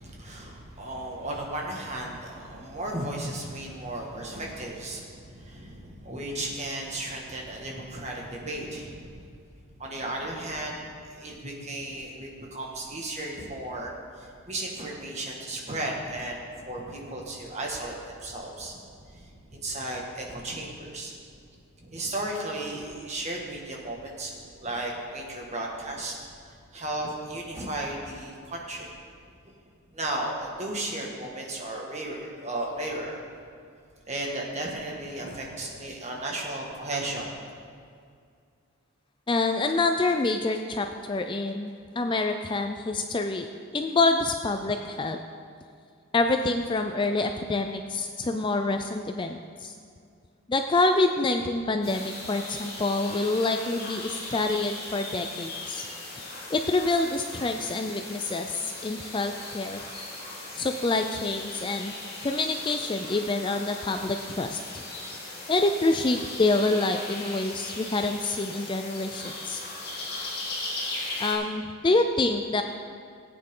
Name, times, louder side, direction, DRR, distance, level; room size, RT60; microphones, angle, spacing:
voice 1, 0.0-9.2 9.6-18.8 19.1-21.1 21.8-26.1 26.7-28.9 29.9-33.2 34.1-37.3, right 1 dB, 30° right, -1 dB, 1.7 m, -35 dB
voice 2, 39.3-43.5 43.7-45.2 46.1-49.7 50.5-55.9 56.5-59.8 60.6-61.9 62.2-64.8 65.5-69.6 71.2-72.6, left 2 dB, 20° left, 6 dB, 0.4 m, -27 dB
sound 1, 51.8-71.3, left 2 dB, 45° left, 2.9 m, -38 dB
17.5 x 8.9 x 3.8 m, 2.3 s
head